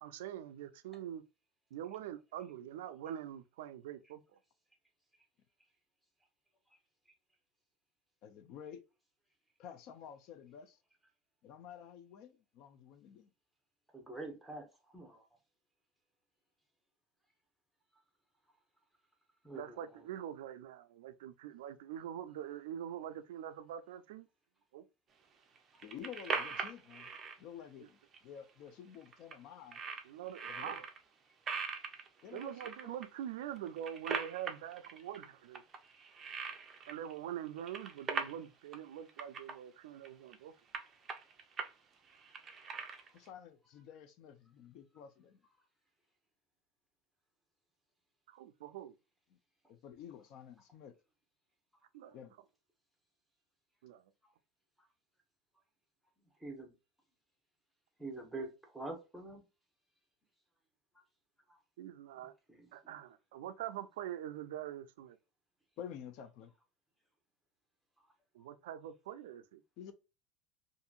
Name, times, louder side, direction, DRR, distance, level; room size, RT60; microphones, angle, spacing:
voice 1, 0.0-1.2 1.7-4.2 19.5-24.3 24.7-24.8 30.0-30.9 32.3-35.6 36.9-40.5 48.3-48.9 51.9-52.2 53.8-54.1 61.8-62.3 62.7-65.2 68.3-69.6, right 10 dB, 90° right, 0.3 m, -44 dB
voice 2, 8.2-8.8 9.6-10.8 11.4-13.3 25.8-27.1 27.4-29.8 30.5-30.8 32.2-33.0 43.1-45.4 49.3-49.4 49.7-50.9 52.1-52.3 65.8-66.5 69.8-69.9, left 9 dB, 50° left, 0.4 m, -50 dB
voice 3, 13.9-14.7 14.9-15.2 19.4-19.8 56.4-56.7 58.0-59.4 62.5-62.7, right 2 dB, ahead, 0.8 m, -45 dB
sound 1, 25.6-27.3 28.1-28.2 28.5-28.6 28.9-29.3 29.7-31.0 31.5-33.0 33.6-35.3 35.5-37.2 37.5-38.4 38.7-38.8 39.1-39.5 40.0-40.3 40.7-41.7 42.1-43.3, right 5 dB, 25° right, 0.4 m, -41 dB
2.7 x 2.5 x 2.3 m
supercardioid pair, 150°, 0 cm